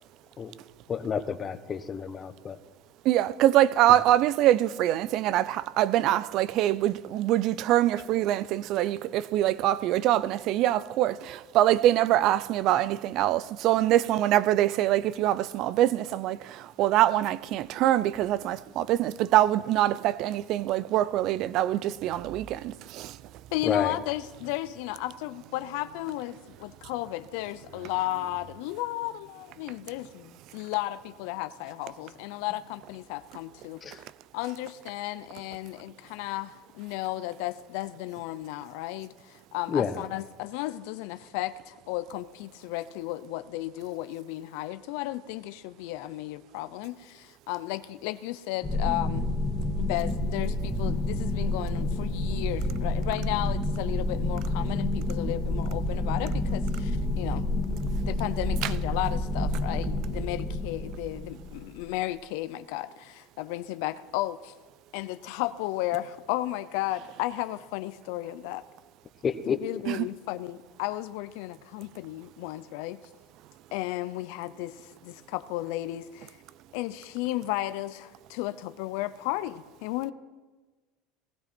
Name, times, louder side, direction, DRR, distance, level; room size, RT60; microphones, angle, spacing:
voice 1, 0.9-2.6 23.6-24.0 33.8-34.0 39.7-40.1 69.2-69.6, left 7 dB, 30° left, 1.2 m, -30 dB
voice 2, 3.0-23.2 58.6-58.7 69.9-70.1, right 13 dB, 55° right, 0.6 m, -24 dB
voice 3, 23.5-33.8 34.3-49.3 49.8-57.5 58.1-64.5 64.9-68.6 69.5-73.0 73.7-76.4 76.7-80.1, left 16 dB, 70° left, 0.6 m, -34 dB
sound 1, 48.6-61.9, left 1 dB, 15° left, 2.1 m, -29 dB
19.0 x 15.5 x 4.5 m
supercardioid pair, 100°, 0 cm